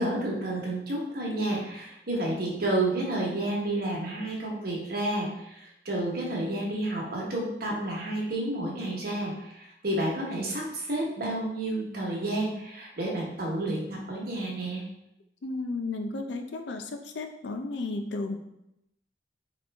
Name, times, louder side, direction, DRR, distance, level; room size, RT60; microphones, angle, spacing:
voice 1, 0.0-14.8, right 1 dB, 60° right, -3 dB, 1.2 m, -30 dB
voice 2, 15.4-18.4, left 3 dB, 75° left, 6 dB, 0.5 m, -33 dB
4.1 x 3.0 x 3.4 m, 0.83 s
head